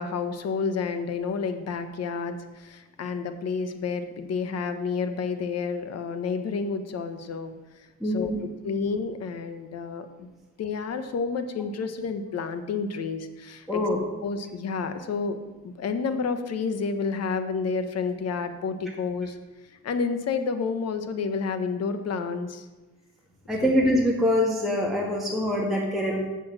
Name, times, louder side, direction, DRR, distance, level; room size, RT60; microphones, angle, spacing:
voice 1, 0.0-7.9 8.1-8.3 8.6-10.3 10.6-13.8 14.2-15.4 15.6-19.4 19.8-22.7 23.6-23.7, left 5 dB, 55° left, 9 dB, 1.0 m, -30 dB
voice 2, 8.0-8.4 13.7-14.0 23.5-26.2, left 1 dB, ahead, -4 dB, 1.6 m, -24 dB
7.0 x 6.4 x 7.4 m, 1.1 s
cardioid pair, 90°, 30 cm